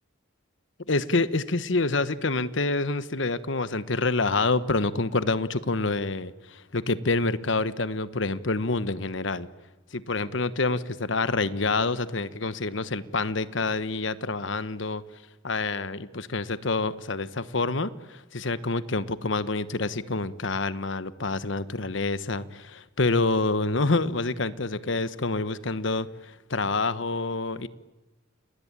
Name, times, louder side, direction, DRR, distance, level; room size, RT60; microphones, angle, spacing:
voice 1, 0.9-9.5 9.9-15.0 15.4-27.7, left 3 dB, 65° left, 14 dB, 1.2 m, -27 dB
29.0 x 20.0 x 8.9 m, 1.2 s
head